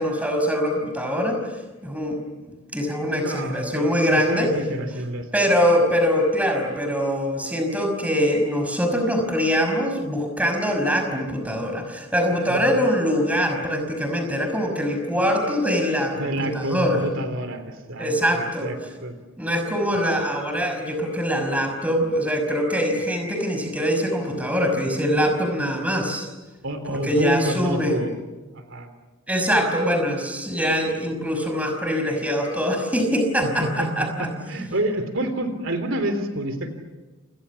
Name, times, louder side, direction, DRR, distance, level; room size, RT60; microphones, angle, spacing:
voice 1, 0.0-1.4 1.8-4.5 5.3-17.0 18.0-18.7 19.4-26.3 27.0-27.9 29.3-34.3 34.6-34.7, equal, 5° right, 5 dB, 5.6 m, -23 dB
voice 2, 3.1-5.3 12.5-12.8 16.1-19.1 26.6-28.1 28.5-28.9 33.4-36.7, right 1 dB, 65° right, 8 dB, 3.5 m, -28 dB
29.0 x 28.5 x 7.2 m, 1.2 s
head